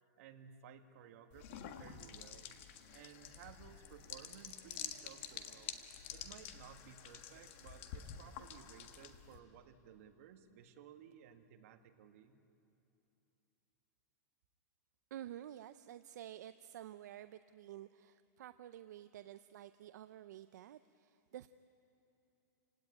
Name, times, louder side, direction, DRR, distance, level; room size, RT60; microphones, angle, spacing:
voice 1, 0.2-2.6 2.9-5.7 6.1-12.3, right 8 dB, 50° right, 5 dB, 1.7 m, -57 dB
sound 1, 1.3-9.4, left 9 dB, 40° left, 1.5 m, -49 dB
voice 2, 15.1-21.5, right 12 dB, 70° right, 12 dB, 0.6 m, -51 dB
29.0 x 17.0 x 9.8 m, 2.9 s
supercardioid pair, 170°, 10 cm